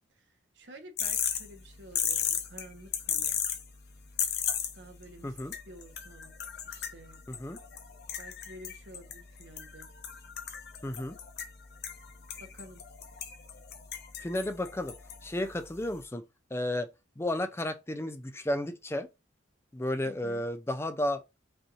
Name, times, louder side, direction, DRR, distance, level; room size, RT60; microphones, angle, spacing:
voice 1, 0.1-3.4 4.7-5.4 5.6-6.3 6.6-7.2 8.2-9.9 12.4-12.8 20.0-20.5, right 1 dB, 60° right, 1.2 m, -51 dB
sound 1, 1.0-16.0, left 8 dB, 55° left, 0.8 m, -37 dB
voice 2, 5.2-5.5 7.3-7.6 10.8-11.2 14.2-14.9 15.2-16.2 16.5-16.9 17.2-19.1 19.7-21.2, left 1 dB, 15° left, 0.4 m, -32 dB
5.4 x 2.6 x 3.0 m
head